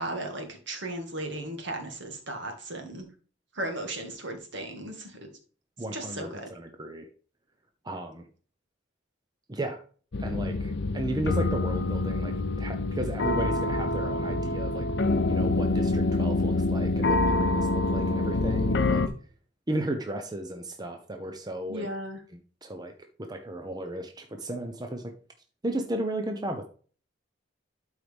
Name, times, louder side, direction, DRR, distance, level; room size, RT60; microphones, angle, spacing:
voice 1, 0.0-3.1 3.6-5.1 5.9-6.5 21.7-22.2, right 1 dB, 65° right, 3 dB, 2.0 m, -35 dB
voice 2, 5.8-7.1 7.8-8.2 9.5-9.8 10.2-14.9 15.3-19.0 19.7-21.9 22.6-22.9 23.2-25.1 25.6-26.7, right 1 dB, 20° right, 5 dB, 0.7 m, -34 dB
sound 1, 10.1-19.1, left 2 dB, 60° left, 0.7 m, -26 dB
12.0 x 4.8 x 3.5 m, 0.41 s
head